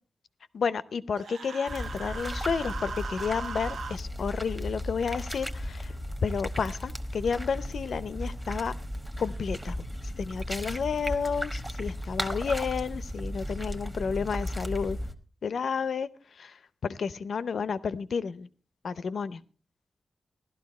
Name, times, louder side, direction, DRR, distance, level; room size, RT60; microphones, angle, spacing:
voice 1, 0.5-5.9 6.2-8.7 9.2-9.8 10.0-15.0 15.4-18.5 18.8-19.4, left 6 dB, 65° left, 15 dB, 0.6 m, -31 dB
Human voice, 1.2-4.0, right 5 dB, 90° right, 0.9 m, -39 dB
sound 1, 1.7-15.1, equal, 5° right, 1.0 m, -35 dB
16.0 x 12.0 x 4.2 m, 0.38 s
wide cardioid pair, 165°, 0 cm